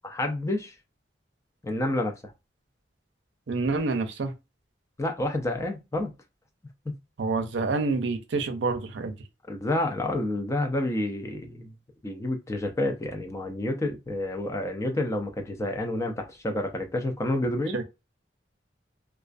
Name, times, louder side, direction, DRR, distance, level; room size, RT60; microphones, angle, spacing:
voice 1, 0.1-0.7 1.6-2.2 5.0-6.1 9.5-11.7 12.0-17.8, left 1 dB, 15° left, 0.4 m, -29 dB
voice 2, 3.5-4.3 7.2-9.1 17.7-17.8, right 3 dB, 80° right, 0.5 m, -27 dB
2.3 x 2.3 x 2.4 m
head